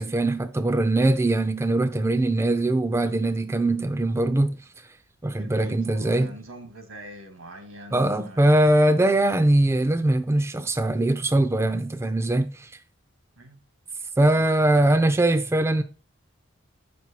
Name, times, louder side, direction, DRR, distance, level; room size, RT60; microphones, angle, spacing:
voice 1, 0.0-4.6 5.2-6.3 7.9-12.7 14.2-15.8, right 1 dB, 15° right, 0.4 m, -21 dB
voice 2, 5.4-8.6 13.4-13.6 14.4-14.5, equal, 90° right, 1.6 m, -43 dB
7.5 x 6.0 x 2.9 m
head